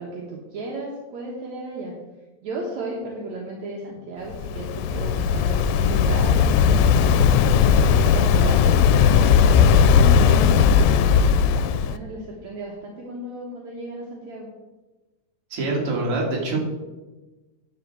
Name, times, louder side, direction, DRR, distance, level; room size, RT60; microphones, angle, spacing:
voice 1, 0.0-1.9 2.4-6.9 7.3-11.1 11.5-14.5, right 2 dB, 70° right, -2 dB, 2.5 m, -34 dB
Waves surf, 4.3-12.0, left 7 dB, 80° left, 1.9 m, -17 dB
voice 2, 15.5-16.6, right 2 dB, 50° right, -2 dB, 2.8 m, -25 dB
9.8 x 5.1 x 7.6 m, 1.1 s
omnidirectional pair, 3.5 m